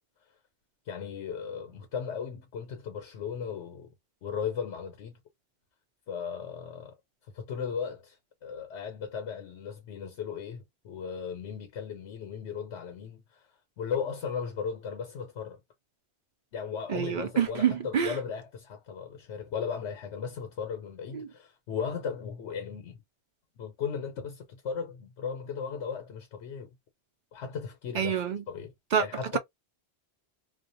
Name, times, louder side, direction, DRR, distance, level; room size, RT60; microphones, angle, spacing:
voice 1, 0.9-3.9 4.2-5.2 6.1-6.9 7.3-13.5 13.8-15.6 16.5-23.0 23.6-26.7 27.3-28.2 28.5-28.7 29.0-29.4, left 6 dB, 75° left, 1.0 m, -36 dB
voice 2, 16.9-18.2 21.1-21.3 27.9-28.4 28.9-29.0, right 8 dB, 60° right, 0.5 m, -27 dB
2.4 x 2.1 x 2.6 m
omnidirectional pair, 1.2 m